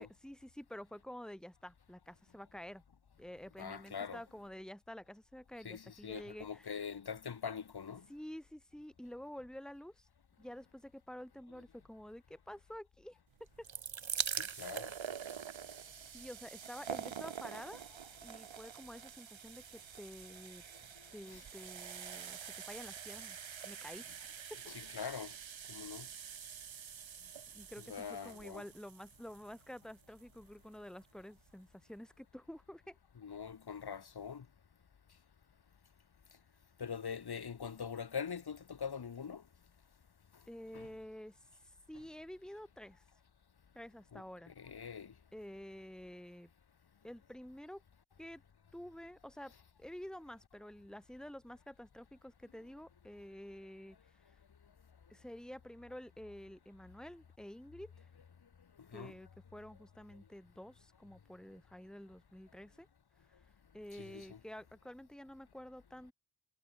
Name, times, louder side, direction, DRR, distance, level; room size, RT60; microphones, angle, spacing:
voice 1, 0.0-2.8 3.2-6.8 8.1-10.1 10.4-13.2 13.6-13.7 16.1-17.8 18.2-20.6 21.1-23.4 23.6-24.0 24.5-24.6 27.5-33.0 40.5-43.0 43.7-44.5 45.3-46.5 47.0-47.8 48.2-48.4 48.7-49.5 49.8-54.4 55.1-58.1 58.9-62.9 63.3-63.5 63.7-66.1, equal, ahead, 3.6 m, -50 dB
voice 2, 3.6-4.2 5.6-8.1 14.4-14.9 21.3-21.4 24.7-25.3 25.7-26.1 27.9-28.6 33.2-34.4 36.8-39.4 40.7-40.9 44.1-45.1 58.9-59.1 63.9-64.4, left 6 dB, 55° left, 3.4 m, -43 dB
sound 1, 13.4-30.4 31.2-31.3 31.5-31.6, right 8 dB, 80° right, 6.2 m, -45 dB
wide cardioid pair, 150°, 46 cm